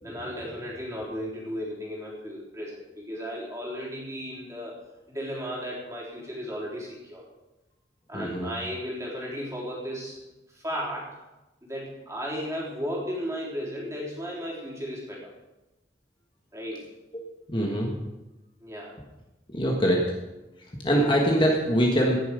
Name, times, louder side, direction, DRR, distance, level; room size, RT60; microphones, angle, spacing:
voice 1, 0.0-4.8 5.1-7.2 8.1-10.2 10.5-11.1 11.6-15.3 16.5-16.8 18.6-19.0, equal, 15° right, -5 dB, 3.7 m, -35 dB
voice 2, 8.1-8.5 17.5-17.9 19.5-20.1 20.8-22.2, equal, 30° left, -1 dB, 1.5 m, -23 dB
17.5 x 7.2 x 5.1 m, 1.0 s
head